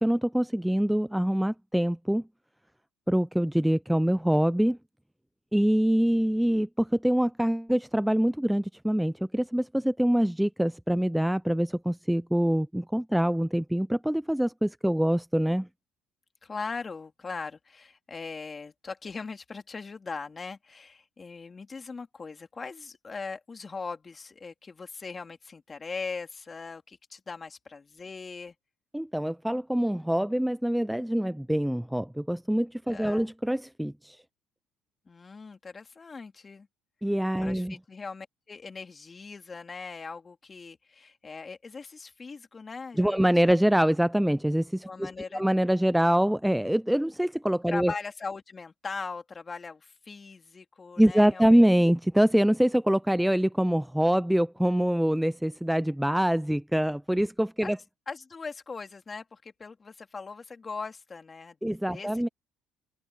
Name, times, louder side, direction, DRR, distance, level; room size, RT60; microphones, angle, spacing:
voice 1, 0.0-2.2 3.1-4.8 5.5-15.7 28.9-34.2 37.0-37.7 43.0-45.1 45.3-47.9 51.0-57.8 61.6-62.3, equal, 5° right, 0.5 m, -25 dB
voice 2, 16.4-28.5 32.9-33.3 35.1-36.7 37.4-43.3 44.9-45.4 47.7-51.6 57.6-57.7 58.1-62.3, left 4 dB, 30° left, 3.1 m, -40 dB
open air
supercardioid pair, 75°, 0 cm